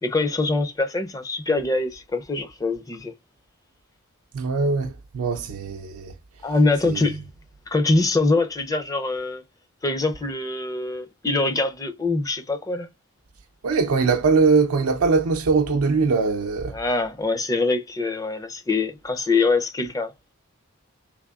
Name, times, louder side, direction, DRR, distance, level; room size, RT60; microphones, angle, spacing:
voice 1, 0.0-3.1 6.4-7.2 7.7-9.4 9.8-12.9 16.7-20.1, left 3 dB, 15° left, 0.4 m, -24 dB
voice 2, 4.3-6.1 6.8-7.1 13.6-16.8, right 4 dB, 90° right, 0.5 m, -21 dB
3.5 x 3.3 x 2.3 m
head